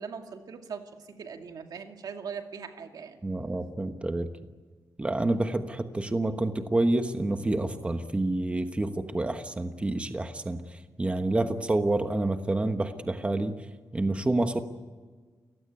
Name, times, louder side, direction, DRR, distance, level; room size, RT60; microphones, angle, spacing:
voice 1, 0.0-3.2, right 6 dB, 75° right, 4 dB, 2.4 m, -40 dB
voice 2, 3.2-4.3 5.0-10.6 11.0-13.6 13.9-14.6, right 2 dB, 15° right, 7 dB, 1.2 m, -28 dB
29.5 x 16.5 x 9.2 m, 1.5 s
wide cardioid pair, 135°, 7 cm